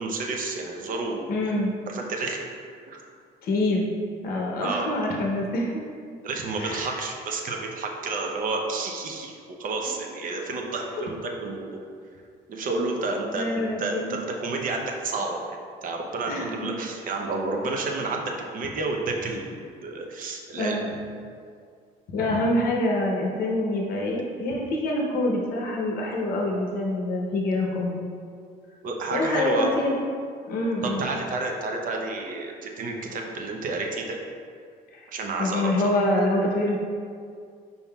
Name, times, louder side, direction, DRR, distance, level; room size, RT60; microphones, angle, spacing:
voice 1, 0.0-1.3 1.9-2.5 2.9-3.1 4.6-4.9 6.2-11.8 12.5-15.6 15.8-20.8 28.8-29.7 30.8-34.2 35.1-35.9, right 3 dB, 55° right, 1 dB, 0.7 m, -30 dB
voice 2, 1.3-1.7 3.4-3.9 4.2-5.8 6.6-7.0 9.9-10.0 10.2-10.5 13.3-14.1 16.3-16.5 20.5-20.9 22.1-28.1 29.1-29.9 30.5-31.0 34.9-35.1 35.4-36.8, left 1 dB, 60° left, -1 dB, 0.7 m, -26 dB
5.5 x 4.2 x 2.3 m, 2.2 s
cardioid pair, 110°, 17 cm